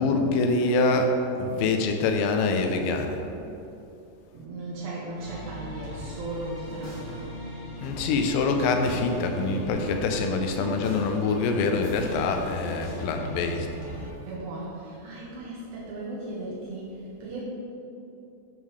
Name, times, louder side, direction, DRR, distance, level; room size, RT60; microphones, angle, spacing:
voice 1, 0.0-3.2 7.8-13.7, left 3 dB, 90° left, 4 dB, 3.0 m, -25 dB
voice 2, 4.3-7.5 10.3-10.9 14.3-17.4, right 2 dB, 80° right, -6 dB, 1.8 m, -37 dB
sound 1, 5.2-14.1, right 1 dB, 60° left, 1.1 m, -39 dB
11.0 x 5.5 x 3.2 m, 2.9 s
omnidirectional pair, 5.1 m